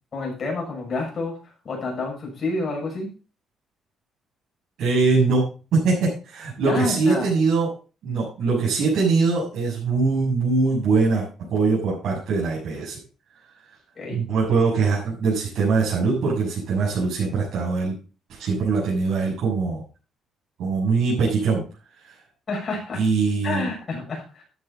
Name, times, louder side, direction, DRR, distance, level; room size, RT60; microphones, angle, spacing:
voice 1, 0.1-3.1 6.6-7.3 14.0-14.2 22.5-23.0 23.4-24.4, left 3 dB, 30° left, -1 dB, 6.7 m, -29 dB
voice 2, 4.8-7.7 8.0-13.0 14.1-17.9 18.3-19.8 20.6-21.6 22.1-22.2 22.9-23.7, right 4 dB, 60° right, -7 dB, 7.0 m, -22 dB
13.0 x 9.7 x 4.0 m, 0.35 s
cardioid pair, 165°, 0 cm